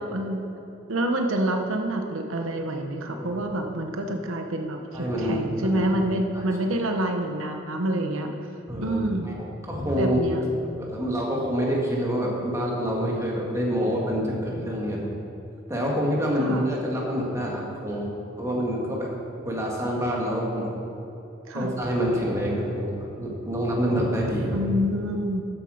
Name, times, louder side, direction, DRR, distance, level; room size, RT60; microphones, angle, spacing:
voice 1, 0.1-0.5 0.9-8.3 8.8-9.3 10.0-10.4 16.4-16.6 21.5-21.7 24.5-25.5, right 1 dB, 80° right, 4 dB, 0.9 m, -27 dB
voice 2, 4.9-5.9 6.3-6.4 8.7-9.0 9.2-10.2 10.8-15.0 15.7-19.1 19.4-20.7 21.5-22.9 23.2-24.6, equal, 15° right, -3 dB, 1.8 m, -27 dB
12.5 x 8.0 x 5.0 m, 2.9 s
head